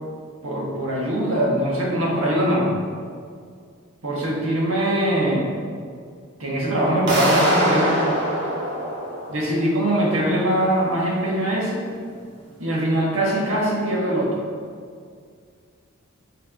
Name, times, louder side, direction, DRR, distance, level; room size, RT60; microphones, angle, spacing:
voice 1, 0.4-2.7 4.0-5.5 6.4-8.2 9.3-11.9 12.6-14.3, right 1 dB, 70° right, -4 dB, 1.6 m, -22 dB
sound 1, 7.1-9.9, right 1 dB, 55° right, 1.5 m, -24 dB
7.0 x 3.6 x 5.7 m, 2.2 s
head